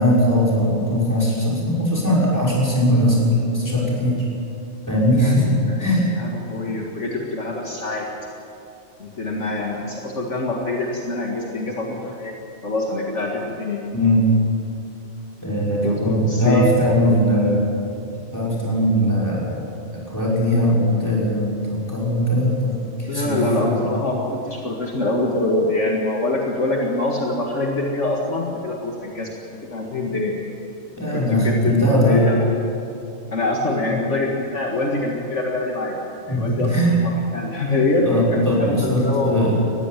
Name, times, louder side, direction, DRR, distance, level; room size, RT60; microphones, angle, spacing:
voice 1, 0.0-4.2 4.9-6.0 13.9-14.3 15.4-17.7 18.3-19.7 19.9-23.9 31.0-32.2 33.9-34.0 36.3-36.9 38.0-39.6, equal, 15° left, -5 dB, 5.7 m, -20 dB
voice 2, 6.2-8.1 9.0-12.3 12.6-13.8 15.8-16.7 17.0-17.1 23.1-29.3 29.6-30.3 31.1-32.6 33.3-36.0 36.3-36.7 37.0-39.6, left 2 dB, 60° left, -1 dB, 2.2 m, -24 dB
20.0 x 15.0 x 9.2 m, 2.7 s
omnidirectional pair, 1.4 m